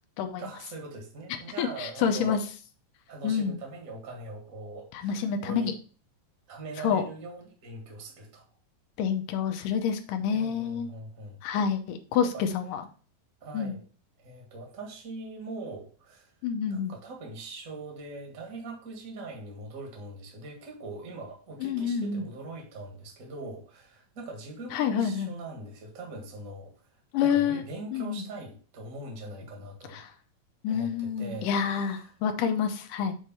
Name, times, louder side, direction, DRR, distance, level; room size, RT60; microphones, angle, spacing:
voice 1, 0.4-2.4 3.1-5.7 6.5-8.4 10.3-11.4 12.2-12.5 13.4-13.8 14.2-16.3 16.7-26.9 27.2-30.0 30.7-32.1, right 2 dB, 35° right, 1 dB, 1.5 m, -42 dB
voice 2, 1.6-2.4 3.2-3.6 5.0-5.7 6.8-7.0 9.0-10.9 11.4-12.8 13.5-13.8 16.4-16.9 21.6-22.3 24.7-25.3 27.1-27.6 27.9-28.2 29.9-30.1 30.6-33.1, left 7 dB, 70° left, 6 dB, 2.3 m, -28 dB
7.5 x 3.3 x 5.5 m, 0.38 s
omnidirectional pair, 4.2 m